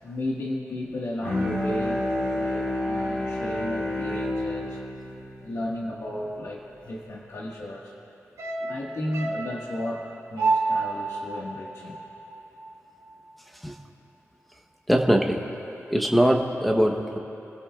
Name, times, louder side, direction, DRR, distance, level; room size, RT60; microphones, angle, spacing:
voice 1, 0.0-4.8 5.4-8.0 8.6-12.0, left 1 dB, 70° left, -4 dB, 1.6 m, -34 dB
Bowed string instrument, 1.2-6.7, left 1 dB, 25° left, 3.5 m, -29 dB
sound 1, 8.4-12.8 13.1-13.2, right 3 dB, 90° right, 1.7 m, -30 dB
voice 2, 14.9-15.5 15.9-17.2, equal, ahead, 2 dB, 1.0 m, -21 dB
29.5 x 16.0 x 2.4 m, 2.9 s
wide cardioid pair, 180°, 5 cm